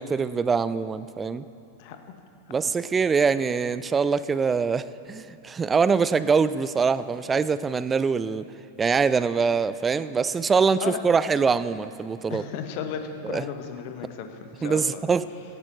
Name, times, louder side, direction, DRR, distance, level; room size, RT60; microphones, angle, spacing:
voice 1, 0.0-1.5 2.5-8.5 8.8-12.4 13.2-13.4 14.6-15.3, right 5 dB, 15° right, 16 dB, 0.4 m, -24 dB
voice 2, 12.3-15.0, left 8 dB, 45° left, 6 dB, 1.1 m, -34 dB
17.5 x 15.0 x 3.1 m, 2.7 s
figure-of-eight pair, 90°, 0 cm